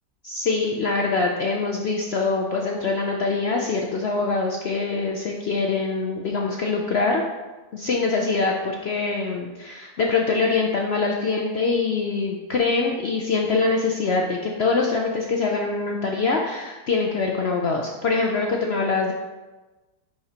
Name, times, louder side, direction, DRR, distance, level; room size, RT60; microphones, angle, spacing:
voice 1, 0.2-7.2 7.7-19.1, left 4 dB, 75° left, 0 dB, 0.6 m, -24 dB
10.5 x 4.5 x 2.9 m, 1.2 s
omnidirectional pair, 1.8 m